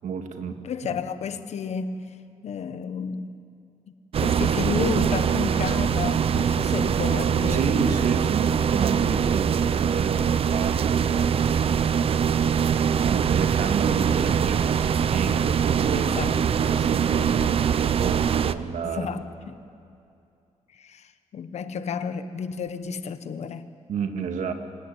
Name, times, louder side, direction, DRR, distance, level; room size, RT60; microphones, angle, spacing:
voice 1, 0.0-1.0 7.5-11.4 13.0-16.1 16.6-19.1 23.9-24.5, right 5 dB, 85° right, 6 dB, 1.9 m, -30 dB
voice 2, 0.6-2.0 2.4-3.4 4.2-7.7 15.9-16.3 17.1-17.5 18.8-19.6 20.7-23.7, left 6 dB, 60° left, 11 dB, 1.2 m, -32 dB
sound 1, 4.1-18.5, right 7 dB, 50° right, 0.6 m, -23 dB
24.5 x 18.5 x 9.2 m, 2.6 s
wide cardioid pair, 150°, 12 cm